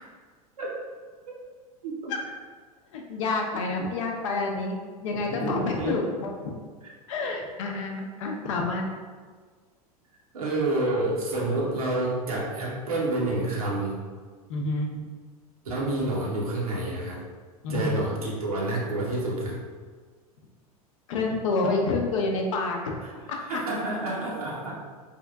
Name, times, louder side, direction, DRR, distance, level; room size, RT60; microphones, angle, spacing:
voice 1, 2.9-4.8 5.0-6.3 7.1-8.9 14.5-14.9 17.6-18.0 21.1-22.8 23.3-23.4, left 3 dB, 55° left, 1 dB, 0.6 m, -28 dB
voice 2, 5.3-6.1 6.8-6.9 10.3-14.0 15.6-17.3 17.7-19.6 23.0-23.1 23.5-24.7, right 2 dB, 70° right, -4 dB, 0.7 m, -28 dB
3.5 x 2.5 x 2.2 m, 1.5 s
figure-of-eight pair, 85°, 19 cm